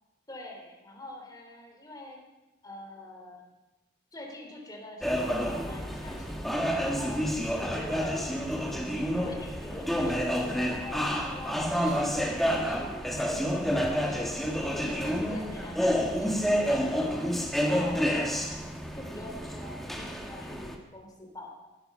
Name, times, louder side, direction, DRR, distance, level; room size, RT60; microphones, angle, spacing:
voice 1, 0.3-2.2 2.6-3.5 4.1-7.3 7.6-8.3 9.1-14.3 14.7-16.9 17.6-18.4 18.9-21.7, left 1 dB, 20° left, 1 dB, 3.4 m, -44 dB
sound 1, 5.0-20.7, equal, ahead, 1.5 m, -29 dB
16.5 x 12.5 x 5.6 m, 1.0 s
head